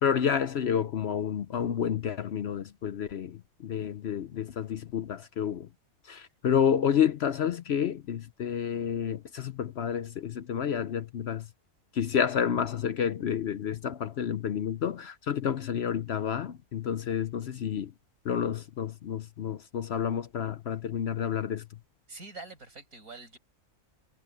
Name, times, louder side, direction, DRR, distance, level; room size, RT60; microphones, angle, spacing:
voice 1, 0.0-5.7 6.1-11.5 11.9-17.9 18.2-21.6, left 8 dB, 60° left, 0.8 m, -30 dB
voice 2, 22.1-23.4, right 3 dB, 80° right, 5.7 m, -45 dB
omnidirectional pair, 1.5 m